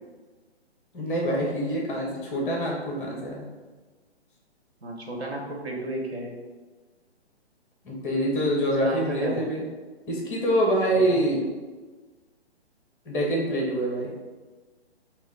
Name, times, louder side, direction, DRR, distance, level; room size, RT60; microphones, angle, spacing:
voice 1, 0.9-3.5 7.8-9.6 10.1-11.4 13.1-14.1, right 1 dB, 5° left, -2 dB, 0.6 m, -25 dB
voice 2, 4.8-6.3 8.8-9.6 10.9-11.4, right 2 dB, 70° right, 0 dB, 1.3 m, -33 dB
4.9 x 2.1 x 4.0 m, 1.3 s
hypercardioid pair, 145°, 33 cm